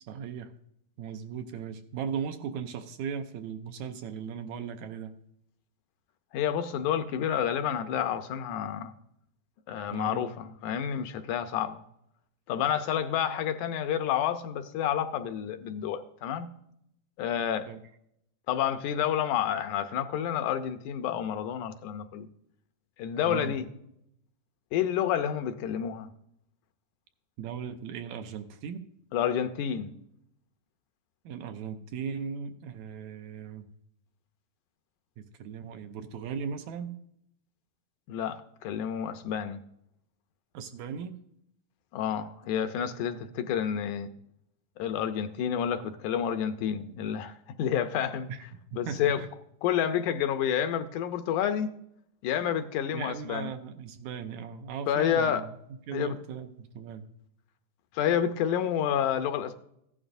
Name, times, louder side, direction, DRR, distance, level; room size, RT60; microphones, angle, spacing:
voice 1, 0.1-0.5 1.0-5.1 9.9-10.3 17.7-17.8 23.3-23.6 27.4-28.8 31.3-33.7 35.2-36.9 40.5-41.2 48.3-48.4 48.7-49.3 52.4-52.5 52.9-55.5 55.9-57.1, right 7 dB, 75° right, 1.9 m, -37 dB
voice 2, 6.3-8.9 9.7-11.8 12.5-16.5 17.2-17.7 18.5-22.3 23.0-23.6 24.7-26.1 29.1-30.0 38.1-39.6 41.9-44.1 44.8-48.3 48.7-49.2 49.6-51.7 52.2-53.5 54.9-55.4 55.9-56.2 57.9-59.5, left 9 dB, 80° left, 2.1 m, -29 dB
15.0 x 11.0 x 2.6 m
omnidirectional pair, 3.6 m